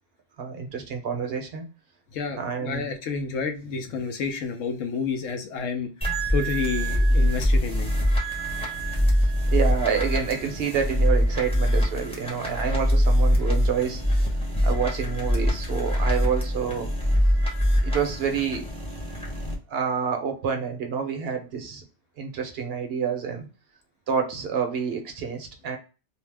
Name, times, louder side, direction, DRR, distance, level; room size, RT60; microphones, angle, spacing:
voice 1, 0.4-1.6 2.4-2.9 9.2-14.0 14.6-16.9 17.8-18.6 19.7-21.8 22.2-23.5 24.1-25.8, right 6 dB, 60° right, 5 dB, 0.8 m, -28 dB
voice 2, 2.1-5.9 6.3-7.9, left 5 dB, 85° left, 6 dB, 1.0 m, -30 dB
sound 1, 6.0-19.5, equal, 5° left, 0.7 m, -23 dB
2.7 x 2.0 x 3.2 m, 0.32 s
omnidirectional pair, 1.3 m